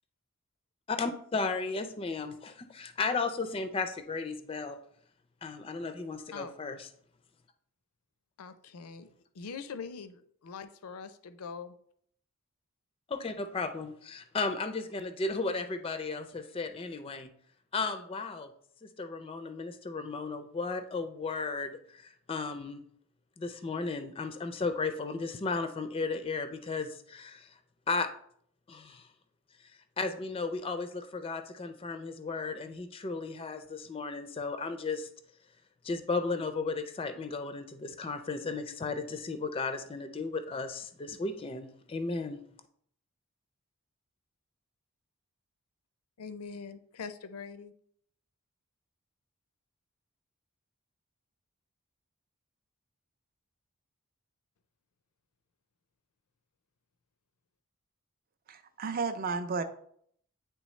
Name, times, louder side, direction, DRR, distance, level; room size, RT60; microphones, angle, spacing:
voice 1, 0.9-4.8 5.4-6.9 13.1-17.3 17.7-18.5 18.8-22.8 23.4-27.5 27.9-28.1 28.7-29.1 30.0-35.1 35.8-42.4, left 4 dB, 25° left, 8 dB, 0.4 m, -35 dB
voice 2, 8.4-11.7 46.2-47.7, left 5 dB, 85° left, 11 dB, 0.5 m, -43 dB
voice 3, 58.5-59.6, right 4 dB, 40° right, 10 dB, 0.4 m, -33 dB
9.1 x 3.4 x 3.1 m, 0.65 s
head